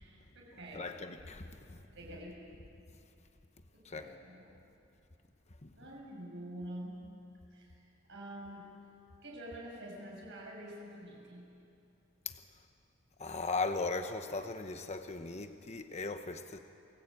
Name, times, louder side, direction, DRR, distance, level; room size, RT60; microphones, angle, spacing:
voice 1, 0.0-0.9 1.9-2.5 3.7-4.5 5.8-7.1 7.5-7.8 8.1-8.7 9.2-11.5, right 1 dB, 60° right, -3 dB, 6.8 m, -47 dB
voice 2, 0.7-1.8 3.8-4.1 5.6-5.7 12.2-12.4 13.2-16.6, left 3 dB, 35° left, 7 dB, 1.0 m, -38 dB
29.0 x 20.5 x 8.8 m, 2.7 s
head